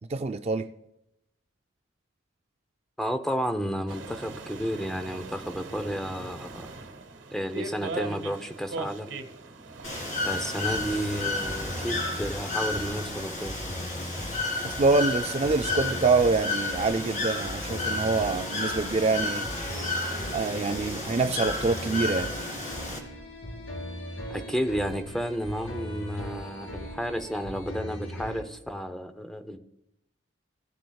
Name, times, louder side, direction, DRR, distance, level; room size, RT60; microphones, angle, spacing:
voice 1, 0.1-0.7 14.6-19.5 20.3-22.3, right 3 dB, 30° right, 7 dB, 0.3 m, -25 dB
voice 2, 3.0-6.7 7.3-9.1 10.3-13.6 24.3-29.6, equal, ahead, 8 dB, 0.6 m, -32 dB
sound 1, 3.9-12.2, right 3 dB, 75° right, 1.1 m, -40 dB
Bird / Water, 9.8-23.0, left 2 dB, 40° left, 2.2 m, -32 dB
sound 2, 10.7-28.4, equal, 80° left, 2.6 m, -39 dB
17.0 x 7.7 x 2.3 m, 0.84 s
head